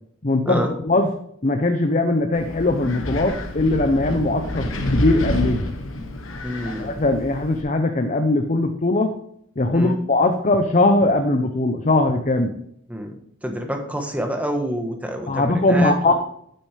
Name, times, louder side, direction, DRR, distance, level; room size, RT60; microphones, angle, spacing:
voice 1, 0.2-1.1 1.4-4.6 4.9-5.6 6.8-9.2 9.6-12.5 15.3-16.1, left 2 dB, 35° left, 5 dB, 0.7 m, -20 dB
Wind, 2.3-7.6, left 1 dB, 75° left, 1.3 m, -28 dB
voice 2, 6.4-6.9 9.7-9.9 12.9-13.1 13.4-16.1, equal, 5° right, 3 dB, 1.2 m, -27 dB
8.7 x 8.6 x 3.3 m, 0.68 s
head